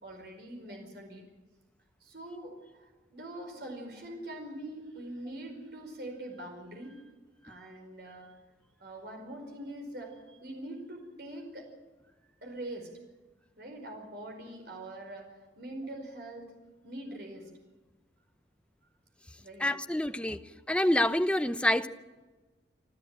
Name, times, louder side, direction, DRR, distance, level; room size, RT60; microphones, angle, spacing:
voice 1, 0.0-1.2 2.0-7.0 7.4-8.3 8.8-11.7 12.4-13.0 13.6-15.3 15.6-16.5 16.8-17.5 19.4-19.7, right 1 dB, 60° right, 3 dB, 4.9 m, -43 dB
voice 2, 19.6-20.4 20.7-21.9, left 1 dB, 5° left, 10 dB, 0.7 m, -27 dB
27.5 x 13.0 x 8.9 m, 1.2 s
head